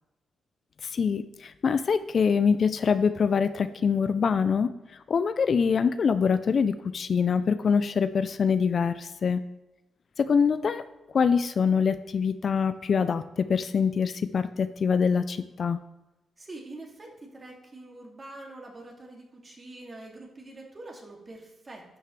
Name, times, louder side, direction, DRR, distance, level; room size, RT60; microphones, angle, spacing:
voice 1, 0.8-4.7 5.1-9.4 10.2-10.8 11.1-15.8, left 6 dB, 55° left, 12 dB, 0.4 m, -24 dB
voice 2, 16.4-21.8, right 2 dB, 35° right, -1 dB, 2.3 m, -45 dB
11.0 x 6.4 x 3.2 m, 1.0 s
cardioid pair, 75°, 0 cm